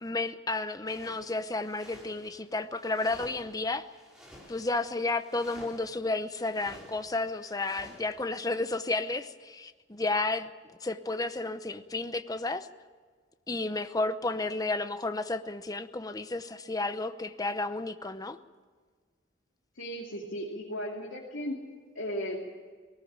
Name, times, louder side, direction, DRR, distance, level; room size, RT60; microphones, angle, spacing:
voice 1, 0.0-3.9 4.5-10.5 10.8-12.7 13.5-18.4, left 2 dB, 20° left, 10 dB, 0.8 m, -32 dB
sound 1, 0.9-8.1, equal, 5° right, 5.0 m, -53 dB
voice 2, 19.7-21.6 21.9-22.5, equal, 80° left, -3 dB, 2.9 m, -36 dB
20.0 x 18.5 x 8.8 m, 1.5 s
head